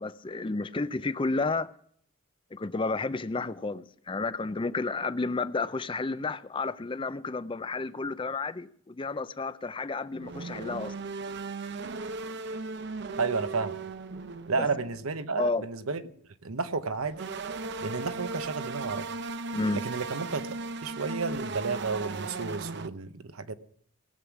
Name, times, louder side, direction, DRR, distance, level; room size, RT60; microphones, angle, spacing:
voice 1, 0.0-1.7 2.5-10.9 14.6-14.7 15.4-15.6 19.5-19.8, left 3 dB, 25° left, 0.4 m, -31 dB
sound 1, 10.1-15.2 17.0-22.9, right 3 dB, 55° right, 0.6 m, -37 dB
voice 2, 13.2-13.8 14.5-16.0 16.4-17.4 17.8-19.1 19.7-20.5 20.8-23.5, right 4 dB, 85° right, 0.9 m, -32 dB
18.5 x 8.0 x 5.9 m
head